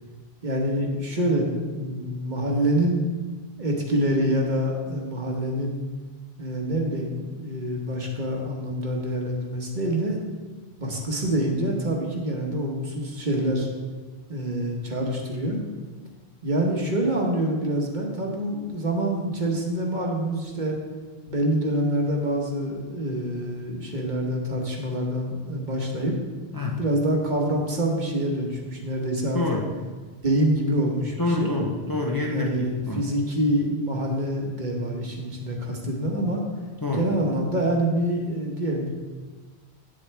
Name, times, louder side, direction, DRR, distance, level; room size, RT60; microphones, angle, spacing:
voice 1, 0.4-3.0 3.6-5.8 6.4-10.2 10.8-13.7 14.3-15.6 16.4-20.8 21.3-26.1 26.8-29.6 30.2-31.5 32.3-36.4 36.9-38.9, right 1 dB, 50° right, 0 dB, 1.3 m, -26 dB
voice 2, 29.3-29.7 31.2-33.1 36.8-37.1, left 3 dB, 25° left, -2 dB, 0.7 m, -27 dB
8.7 x 7.5 x 3.4 m, 1.4 s
omnidirectional pair, 1.0 m